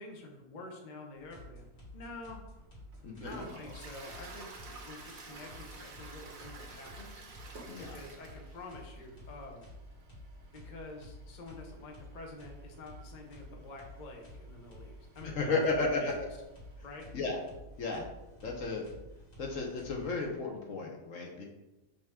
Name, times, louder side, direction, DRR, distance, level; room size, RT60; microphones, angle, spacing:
voice 1, 0.0-1.7 1.9-2.4 3.2-7.2 7.8-9.7 10.5-15.7 16.0-16.1 16.8-17.1, left 2 dB, 35° left, 1 dB, 1.0 m, -48 dB
sound 1, 1.2-20.6, equal, 85° left, 3.2 m, -51 dB
Toilet flush, 2.6-16.9, right 3 dB, 65° right, 1.5 m, -53 dB
voice 2, 3.0-3.4 7.7-8.0 15.2-16.1 17.1-17.4 17.8-18.1 18.4-18.9 19.4-21.5, left 3 dB, 60° left, 1 dB, 1.3 m, -33 dB
6.0 x 5.7 x 3.5 m, 0.99 s
omnidirectional pair, 1.6 m